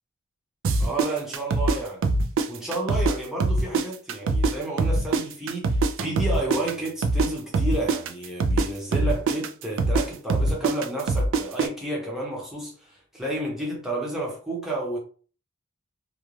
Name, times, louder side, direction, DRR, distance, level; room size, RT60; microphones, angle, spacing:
sound 1, 0.6-3.1 3.4-7.3 7.5-11.7, right 3 dB, 65° right, 0.3 m, -23 dB
voice 1, 0.8-2.0 2.5-15.0, right 2 dB, ahead, 0.8 m, -31 dB
2.4 x 2.2 x 3.1 m
head